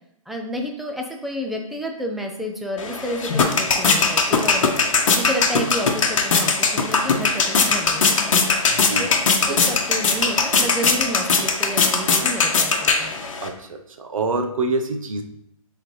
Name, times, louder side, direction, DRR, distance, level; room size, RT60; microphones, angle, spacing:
voice 1, 0.3-4.7 5.1-8.5 9.0-9.1 9.4-13.2, equal, ahead, 2 dB, 0.4 m, -30 dB
sound 1, 2.8-13.5, left 4 dB, 60° left, 1.0 m, -20 dB
voice 2, 8.7-9.1 9.5-9.6 13.4-15.2, right 3 dB, 65° right, 5 dB, 0.9 m, -26 dB
8.1 x 3.8 x 3.2 m, 0.77 s
figure-of-eight pair, 140°, 18 cm